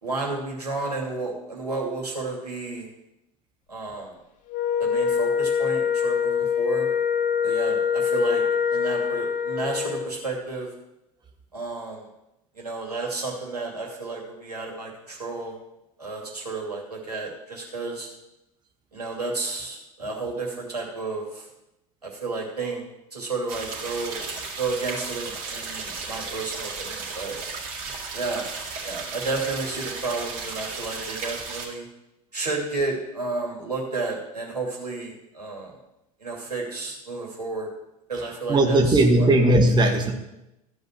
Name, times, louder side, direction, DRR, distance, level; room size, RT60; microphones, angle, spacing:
voice 1, 0.0-2.9 3.7-4.1 4.8-6.9 7.4-8.4 8.7-10.7 11.5-12.1 12.6-15.5 16.0-18.1 18.9-21.5 22.0-22.8 23.1-24.2 24.6-27.4 28.1-28.5 28.8-31.8 32.3-35.7 36.2-37.7 38.1-39.3, right 3 dB, 80° right, -1 dB, 2.8 m, -31 dB
Wind instrument woodwind instrument, 4.5-10.1, left 7 dB, 40° left, 1.1 m, -24 dB
sound 1, 23.5-31.7, right 4 dB, 55° right, 3.6 m, -34 dB
voice 2, 38.5-40.1, right 1 dB, 20° right, 3 dB, 1.6 m, -18 dB
14.0 x 5.4 x 7.7 m, 0.90 s
figure-of-eight pair, 75°, 20 cm